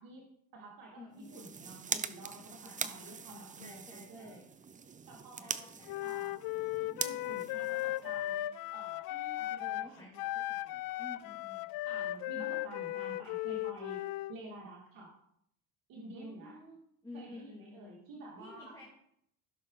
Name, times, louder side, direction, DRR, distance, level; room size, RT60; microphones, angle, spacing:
voice 1, 0.0-4.5 5.1-5.7 6.0-6.4 7.0-8.4 8.7-10.0 11.8-15.1 15.9-16.6 17.1-18.8, right 2 dB, 65° right, -3 dB, 2.7 m, -50 dB
voice 2, 0.9-1.7 2.6-4.5 5.4-6.0 9.6-11.7 16.1-18.1 18.4-18.8, left 2 dB, 10° left, -4 dB, 2.6 m, -53 dB
sound 1, 1.1-8.4, right 6 dB, 20° right, 0.5 m, -42 dB
Wind instrument woodwind instrument, 5.9-9.9 10.2-14.4, left 15 dB, 70° left, 0.5 m, -37 dB
16.0 x 6.3 x 4.0 m, 0.72 s
cardioid pair, 120°, 36 cm